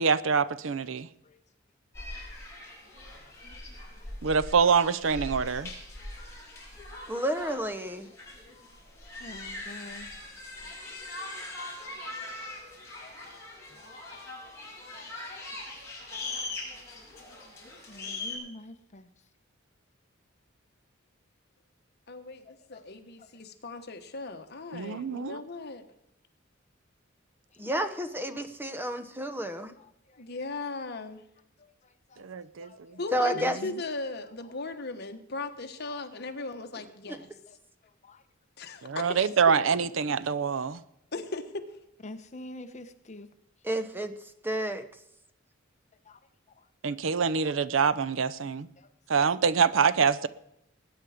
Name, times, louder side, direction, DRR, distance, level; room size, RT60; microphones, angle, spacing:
voice 1, 0.0-1.1 4.2-5.7 24.7-25.4 32.2-33.0 33.6-33.7 38.8-40.8 46.8-48.7 49.1-50.3, right 6 dB, 70° right, 15 dB, 0.6 m, -25 dB
sound 1, 1.9-18.4, left 2 dB, 15° left, 6.8 m, -41 dB
voice 2, 3.2-3.6 4.0-4.1 9.2-10.1 12.5-13.2 13.8-13.9 17.9-19.1 22.4-22.8 23.2-23.3 29.8-30.2 31.6-32.2 32.6-33.0 35.8-36.0 37.5-37.6 38.0-38.2 40.7-40.8 42.0-43.3 46.0-46.2 46.6-46.7 47.3-47.4 48.8-48.9, left 1 dB, 35° left, 9 dB, 0.9 m, -48 dB
voice 3, 7.1-8.1 27.6-29.7 33.1-33.6 37.1-37.2 43.6-44.1 44.4-44.8, right 1 dB, 10° right, 10 dB, 0.8 m, -30 dB
voice 4, 22.1-25.8 30.2-31.2 33.0-37.3 38.6-39.3 41.1-41.6, left 3 dB, 55° left, 6 dB, 1.3 m, -38 dB
20.0 x 9.2 x 5.0 m, 0.79 s
head